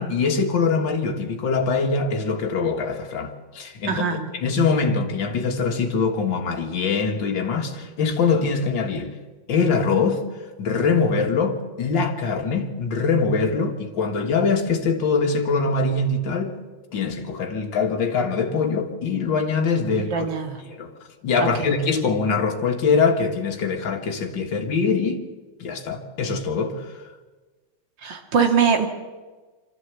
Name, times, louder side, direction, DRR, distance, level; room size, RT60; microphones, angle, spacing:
voice 1, 0.0-4.0 4.3-9.1 9.5-10.2 10.6-16.6 16.9-20.3 20.7-20.9 21.2-25.2 25.6-26.8, left 4 dB, 65° left, 2.5 m, -23 dB
voice 2, 3.9-4.3 19.9-20.6 21.4-21.7 28.0-28.9, right 6 dB, 60° right, 2.7 m, -22 dB
25.0 x 13.5 x 8.3 m
omnidirectional pair, 2.2 m